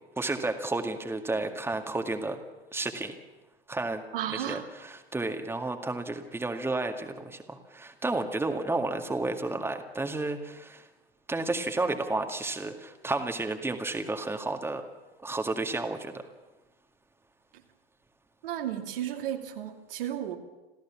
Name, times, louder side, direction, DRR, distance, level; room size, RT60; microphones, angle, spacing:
voice 1, 0.2-2.4 2.7-3.2 3.7-4.0 4.3-10.9 11.3-14.8 15.2-16.2, right 2 dB, 10° right, 5 dB, 2.0 m, -32 dB
voice 2, 4.1-4.6 18.4-20.4, right 11 dB, 65° right, 4 dB, 2.4 m, -33 dB
27.5 x 15.5 x 7.3 m, 1.2 s
figure-of-eight pair, 85°, 31 cm